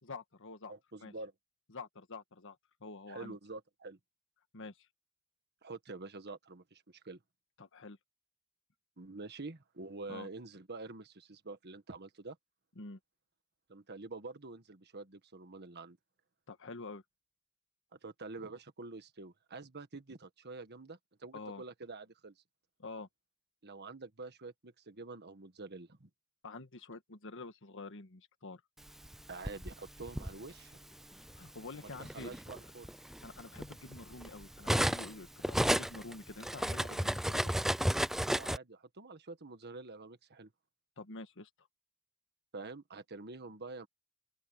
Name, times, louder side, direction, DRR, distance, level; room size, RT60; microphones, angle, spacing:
voice 1, 0.0-0.7 1.0-1.1 1.7-3.4 4.5-4.9 7.6-8.0 10.1-10.3 12.7-13.0 16.5-17.0 21.3-21.6 22.8-23.1 26.4-28.6 31.3-32.3 33.1-37.5 41.0-41.5, left 3 dB, 60° left, 1.6 m, -47 dB
voice 2, 0.7-1.3 3.1-4.0 5.6-7.2 9.0-12.4 13.7-16.0 17.9-22.3 23.6-26.1 29.3-30.8 31.7-33.0 38.2-40.5 42.5-43.9, right 3 dB, 50° right, 1.6 m, -47 dB
Cutlery silverware, 29.0-30.3 31.3-31.5 31.9-35.1 35.4-38.6, equal, ahead, 0.3 m, -33 dB
open air
head